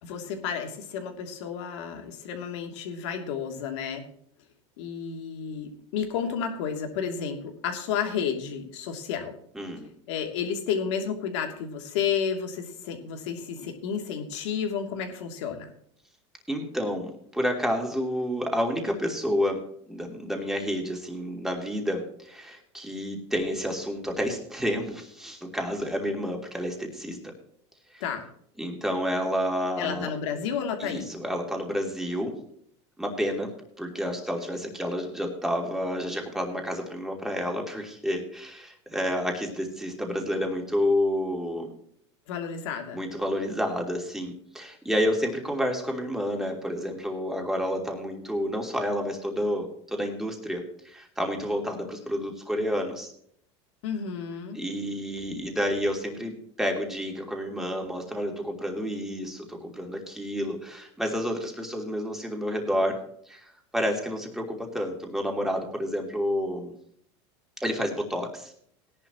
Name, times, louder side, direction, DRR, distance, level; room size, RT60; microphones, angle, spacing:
voice 1, 0.0-4.0 4.8-9.3 10.1-15.7 28.0-28.2 29.8-31.1 42.3-43.0 53.8-54.6, left 7 dB, 75° left, 4 dB, 2.9 m, -31 dB
voice 2, 9.5-9.9 16.5-19.6 19.9-27.2 27.9-28.0 28.6-30.1 30.8-32.4 33.0-33.5 33.8-41.8 42.9-53.1 54.5-56.3 56.6-63.0 63.3-66.7 67.6-68.5, equal, ahead, 1 dB, 3.1 m, -30 dB
17.5 x 11.0 x 3.1 m, 0.64 s
supercardioid pair, 120°, 15 cm